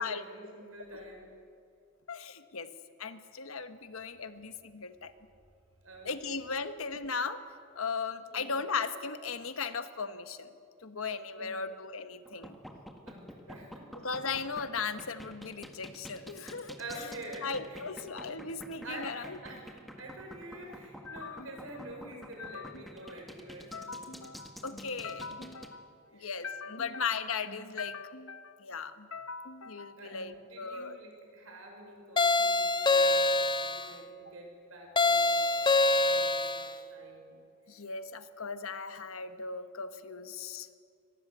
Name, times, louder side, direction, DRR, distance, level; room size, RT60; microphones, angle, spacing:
voice 1, 0.0-1.3 5.8-6.1 8.3-8.5 11.3-11.7 13.1-13.9 16.8-17.8 18.8-24.0 26.1-26.3 26.6-26.9 30.0-35.5 35.9-37.4, right 1 dB, 75° right, 2 dB, 6.1 m, -47 dB
voice 2, 2.1-2.7 3.0-5.1 6.0-7.4 7.7-10.5 10.8-12.5 13.9-17.1 17.4-19.4 21.1-21.5 22.4-23.1 23.7-31.0 37.7-40.7, left 5 dB, 80° left, 10 dB, 1.2 m, -37 dB
sound 1, 12.2-25.7, equal, ahead, 1.7 m, -48 dB
sound 2, 32.2-33.9 35.0-36.7, left 3 dB, 20° left, 0.8 m, -25 dB
24.5 x 19.0 x 8.1 m, 2.4 s
head